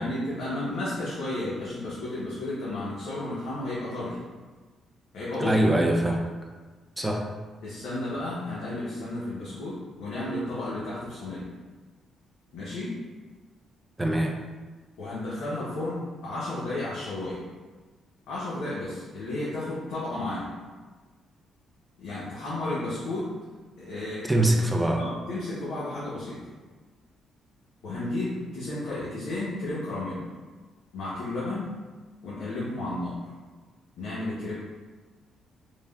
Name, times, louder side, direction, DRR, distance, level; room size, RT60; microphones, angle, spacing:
voice 1, 0.0-4.2 5.1-5.6 7.6-11.4 12.5-12.9 15.0-17.4 18.3-20.5 22.0-23.3 23.8-24.3 25.0-26.4 27.8-30.2 30.9-31.7 32.2-33.2 34.0-34.5, left 2 dB, 80° left, -9 dB, 0.7 m, -32 dB
voice 2, 5.4-6.2 7.0-7.3 14.0-14.4 24.2-25.0, right 1 dB, 10° right, 0 dB, 0.4 m, -23 dB
3.3 x 2.1 x 2.2 m, 1.3 s
cardioid pair, 90°, 0 cm